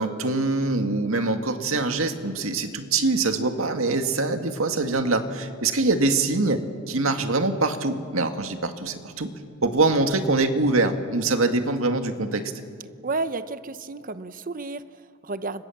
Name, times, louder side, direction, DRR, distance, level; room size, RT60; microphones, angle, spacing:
voice 1, 0.0-6.6 6.9-9.3 9.6-12.4, right 3 dB, 90° right, 6 dB, 2.0 m, -24 dB
voice 2, 13.0-15.6, right 3 dB, 40° right, 12 dB, 0.8 m, -32 dB
30.0 x 25.0 x 7.3 m, 2.2 s
head